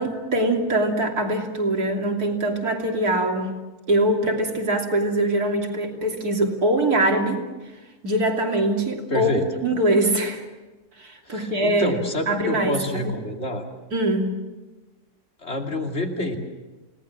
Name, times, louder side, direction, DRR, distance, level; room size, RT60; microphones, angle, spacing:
voice 1, 0.0-3.5 3.9-7.4 8.0-10.4 11.0-12.0 12.3-13.2 13.9-14.3, right 1 dB, 70° right, 2 dB, 3.5 m, -23 dB
voice 2, 9.1-9.6 11.3-13.7 15.4-16.4, left 1 dB, 45° left, 2 dB, 3.0 m, -27 dB
29.0 x 18.5 x 7.5 m, 1.2 s
omnidirectional pair, 1.7 m